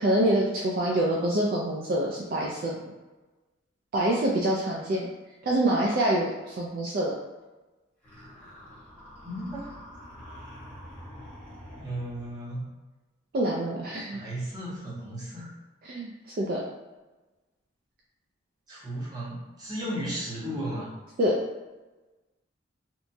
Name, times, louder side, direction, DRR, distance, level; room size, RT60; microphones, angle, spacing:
voice 1, 0.0-2.8 3.9-5.1 5.4-7.2 13.3-14.2 15.8-16.1 16.4-16.6 21.2-21.3, right 1 dB, 50° right, -3 dB, 0.3 m, -26 dB
sound 1, 8.0-12.4, equal, 10° left, 0.8 m, -46 dB
voice 2, 9.2-9.8 11.8-12.7 14.1-15.5 18.7-20.9, right 1 dB, 20° right, -7 dB, 0.8 m, -35 dB
2.8 x 2.2 x 2.5 m, 1.2 s
head